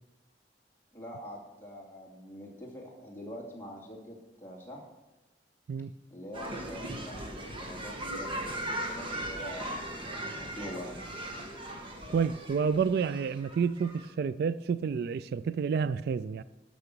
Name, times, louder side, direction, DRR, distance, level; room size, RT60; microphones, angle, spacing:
voice 1, 0.9-4.8 6.1-8.6 8.9-10.0 10.6-11.0, equal, 15° left, -3 dB, 2.7 m, -44 dB
sound 1, 6.3-14.1, right 1 dB, 30° right, 1.7 m, -38 dB
voice 2, 12.1-16.4, right 6 dB, 60° right, 16 dB, 0.3 m, -29 dB
12.5 x 6.1 x 6.7 m, 1.1 s
head